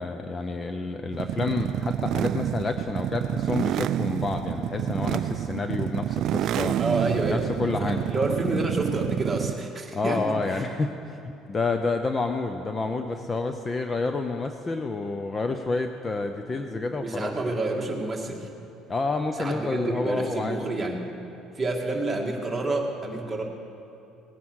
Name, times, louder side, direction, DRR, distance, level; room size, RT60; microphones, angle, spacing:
voice 1, 0.0-6.8 7.3-8.0 9.9-17.3 18.9-20.6, left 3 dB, 25° left, 6 dB, 0.6 m, -29 dB
sound 1, 1.1-9.7, right 11 dB, 60° right, 0.3 m, -28 dB
voice 2, 6.8-7.4 7.8-10.7 16.7-18.5 19.4-21.1 21.6-23.4, right 2 dB, 15° right, -1 dB, 2.0 m, -29 dB
18.0 x 9.4 x 6.4 m, 2.8 s
cardioid pair, 120°, 0 cm